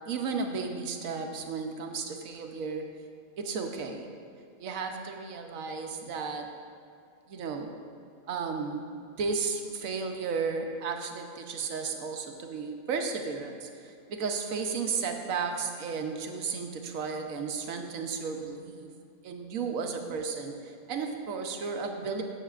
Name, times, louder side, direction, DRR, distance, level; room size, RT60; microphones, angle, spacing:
voice 1, 0.1-2.8 3.4-4.1 4.6-6.5 7.3-7.7 8.3-18.9 19.2-22.2, right 5 dB, 80° right, 4 dB, 1.2 m, -34 dB
13.0 x 7.3 x 2.4 m, 2.5 s
omnidirectional pair, 1.4 m